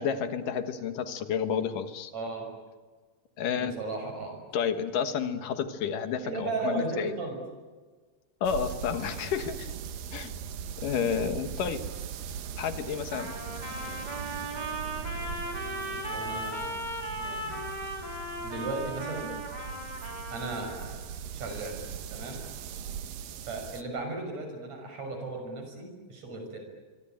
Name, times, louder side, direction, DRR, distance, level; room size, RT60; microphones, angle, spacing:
voice 1, 0.0-2.1 3.4-3.7 4.5-7.1 8.4-9.7 10.1-10.3 10.8-11.8 12.6-13.3, left 7 dB, 75° left, 9 dB, 3.0 m, -30 dB
voice 2, 2.1-2.5 3.6-4.4 6.2-7.4 11.0-11.1 15.7-16.9 17.2-17.6 18.4-19.3 20.3-21.0 21.3-21.8 22.1-22.4 23.5-26.6, right 3 dB, 55° right, 4 dB, 7.3 m, -36 dB
sound 1, 8.4-23.8, right 8 dB, 90° right, 3.1 m, -40 dB
Trumpet, 13.1-20.9, right 1 dB, 10° right, 4.6 m, -37 dB
25.5 x 24.0 x 9.1 m, 1.4 s
omnidirectional pair, 3.8 m